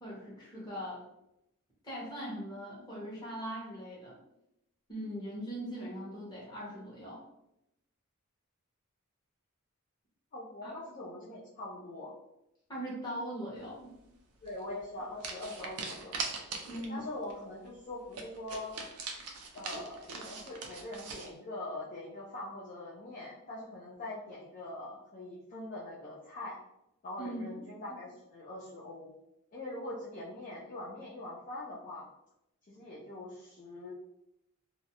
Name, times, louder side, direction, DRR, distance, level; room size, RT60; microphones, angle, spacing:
voice 1, 0.0-1.0 1.8-4.2 4.9-7.2 10.6-10.7 12.7-13.9 16.6-17.1 27.2-27.4, equal, 20° left, -7 dB, 0.8 m, -40 dB
voice 2, 10.3-12.1 14.4-16.2 16.9-18.7 19.5-26.6 27.0-29.1 29.5-32.1 32.7-33.9, left 1 dB, 35° left, -7 dB, 0.4 m, -43 dB
sound 1, 14.4-14.6 15.2-17.0 17.3-17.4 17.7-17.8 18.1-21.3, right 4 dB, 85° right, 0.4 m, -41 dB
2.4 x 2.0 x 2.8 m, 0.85 s
head